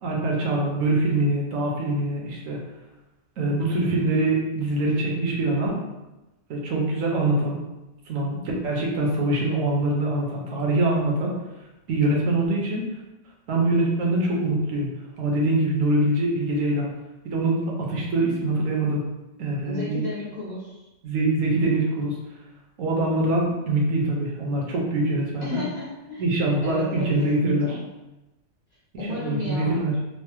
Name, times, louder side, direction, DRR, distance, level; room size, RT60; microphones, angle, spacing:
voice 1, 0.0-2.6 3.4-5.8 6.5-7.6 8.1-11.3 11.9-12.9 13.5-14.9 15.2-16.9 17.2-19.0 19.4-20.0 21.0-22.2 22.8-25.6 26.2-27.8 29.1-29.9, right 2 dB, 70° right, -1 dB, 1.0 m, -24 dB
voice 2, 19.6-20.9 25.4-26.2 26.6-27.8 29.0-29.9, left 2 dB, 50° left, -7 dB, 0.5 m, -33 dB
3.1 x 2.0 x 3.0 m, 1.0 s
omnidirectional pair, 1.5 m